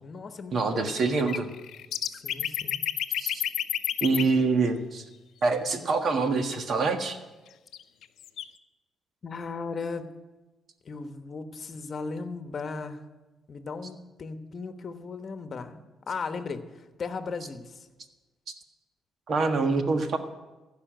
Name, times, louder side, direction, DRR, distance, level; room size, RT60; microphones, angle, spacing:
voice 1, 0.0-1.1 2.2-2.9 9.2-10.1 10.8-13.0 13.5-17.9, left 4 dB, 45° left, 8 dB, 1.1 m, -37 dB
voice 2, 0.5-1.5 3.2-3.4 4.0-5.0 5.4-7.2 19.3-20.2, right 3 dB, 55° right, 6 dB, 1.5 m, -25 dB
sound 1, 1.2-4.2 7.7-7.8 8.0-8.4, left 11 dB, 75° left, 0.6 m, -29 dB
15.5 x 5.8 x 9.0 m, 1.1 s
cardioid pair, 90°, 0 cm